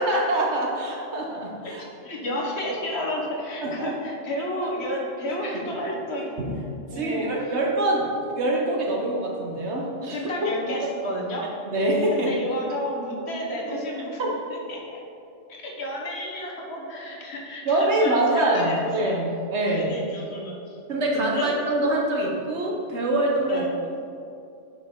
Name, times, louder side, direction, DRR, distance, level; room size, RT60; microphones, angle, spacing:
voice 1, 0.0-1.8 3.6-4.0 4.5-4.7 5.5-5.7 6.4-6.6 6.9-10.2 11.7-12.4 13.7-13.8 14.2-14.3 17.6-19.9 20.9-23.6, right 1 dB, 65° right, -1 dB, 1.3 m, -25 dB
voice 2, 1.6-6.4 6.9-7.3 10.1-11.5 12.1-14.3 14.7-15.0 15.5-19.1 19.6-20.6 21.1-21.5 23.5-23.7, left 1 dB, 60° left, -1 dB, 1.3 m, -31 dB
6.8 x 6.2 x 3.7 m, 2.5 s
omnidirectional pair, 1.2 m